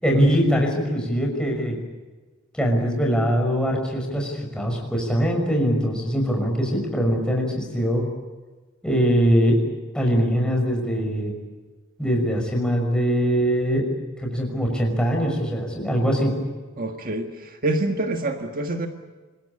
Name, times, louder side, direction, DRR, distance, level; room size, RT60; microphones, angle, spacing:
voice 1, 0.0-1.8 2.5-8.1 8.8-9.6 9.9-11.3 12.0-13.9 14.2-16.4, equal, 5° left, 0 dB, 5.9 m, -22 dB
voice 2, 16.8-18.9, right 2 dB, 45° right, 5 dB, 1.7 m, -26 dB
26.5 x 21.5 x 8.6 m, 1.3 s
head